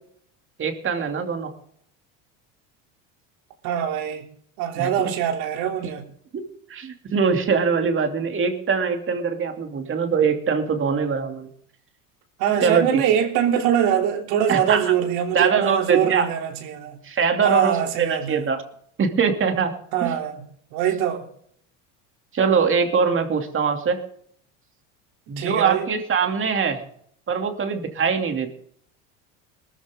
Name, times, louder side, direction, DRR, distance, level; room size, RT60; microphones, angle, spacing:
voice 1, 0.6-1.5 4.8-4.9 6.3-11.5 12.6-13.0 14.5-14.9 15.3-16.3 17.0-18.6 19.0-19.7 20.0-20.2 22.3-24.0 25.3-26.8 27.3-28.5, right 6 dB, 35° right, 2.8 m, -22 dB
voice 2, 3.6-4.3 4.6-6.1 12.4-17.0 17.4-18.4 19.9-20.4 20.7-21.3 25.4-25.8, right 9 dB, 70° right, 3.3 m, -23 dB
20.0 x 14.0 x 3.7 m
supercardioid pair, 100°, 37 cm